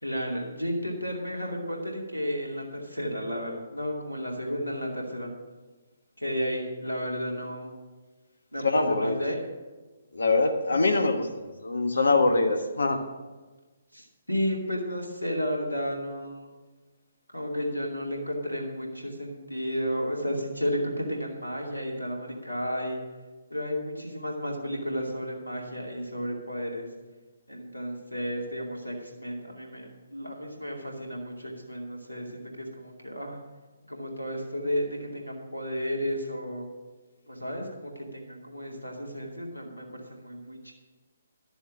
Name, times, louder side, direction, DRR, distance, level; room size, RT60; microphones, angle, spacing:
voice 1, 0.0-5.3 6.2-7.7 8.5-9.4 10.7-10.9 13.9-16.5 17.3-23.0 23.5-26.9 27.5-33.4 33.9-36.7 37.3-40.7, equal, 90° left, 0 dB, 2.5 m, -33 dB
voice 2, 8.6-9.2 10.1-13.0, left 3 dB, 70° left, 6 dB, 1.3 m, -24 dB
12.5 x 7.0 x 6.1 m, 1.3 s
figure-of-eight pair, 135°, 0 cm